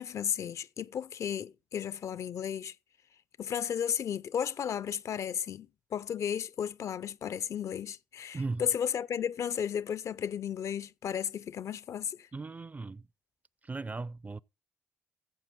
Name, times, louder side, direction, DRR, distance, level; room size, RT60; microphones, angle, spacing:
voice 1, 0.0-2.7 3.4-12.3, left 8 dB, 60° left, 0.4 m, -34 dB
voice 2, 12.3-13.0 13.6-14.4, right 3 dB, 25° right, 0.5 m, -37 dB
14.0 x 7.4 x 4.1 m
supercardioid pair, 50°, 6 cm